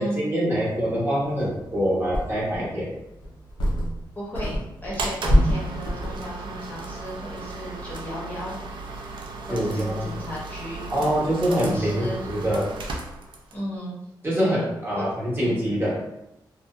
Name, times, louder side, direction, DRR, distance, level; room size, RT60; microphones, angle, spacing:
voice 1, 0.0-2.9 9.5-10.2 10.9-12.7 14.2-15.9, equal, 30° right, -7 dB, 0.8 m, -25 dB
sound 1, 1.5-1.6 2.1-2.7 3.2-4.1 4.3-6.3, equal, 70° left, 0.5 m, -24 dB
voice 2, 4.2-8.6 9.5-10.9 11.5-12.3 13.5-14.0 14.4-14.6 14.9-15.1, equal, 20° left, -6 dB, 0.6 m, -35 dB
sound 2, 4.9-13.6, right 3 dB, 80° right, 0.4 m, -36 dB
2.6 x 2.1 x 2.3 m, 0.88 s
wide cardioid pair, 150°, 8 cm